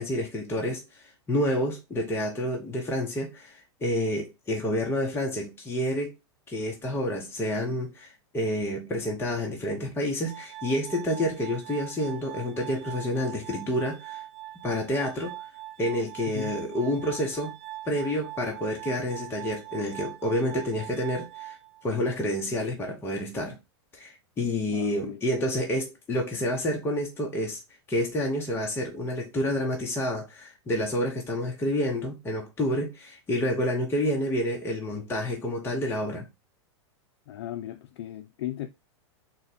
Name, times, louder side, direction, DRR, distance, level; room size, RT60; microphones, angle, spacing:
voice 1, 0.0-6.1 6.5-14.2 14.6-15.4 15.8-17.5 17.9-21.6 21.8-23.6 23.9-27.6 27.9-36.3, left 1 dB, 15° left, 0.8 m, -29 dB
Glass, 10.2-22.2, right 15 dB, 40° right, 0.4 m, -42 dB
voice 2, 16.3-16.6 24.7-25.2 37.3-38.7, left 13 dB, 65° left, 0.4 m, -36 dB
4.0 x 2.2 x 4.0 m
hypercardioid pair, 125°, 15 cm